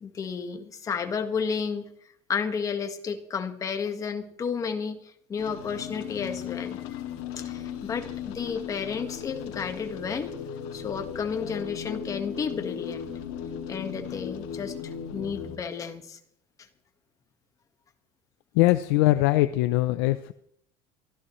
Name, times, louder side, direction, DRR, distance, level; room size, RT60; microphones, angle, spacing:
voice 1, 0.0-1.9 2.3-6.8 7.4-10.3 10.7-13.1 13.7-16.2, left 6 dB, 25° left, 6 dB, 1.6 m, -32 dB
sound 1, 5.4-15.6, left 8 dB, 65° left, 2.4 m, -37 dB
voice 2, 18.5-20.3, left 17 dB, 85° left, 10 dB, 0.7 m, -21 dB
23.5 x 15.0 x 3.2 m, 0.70 s
cardioid pair, 150°, 13 cm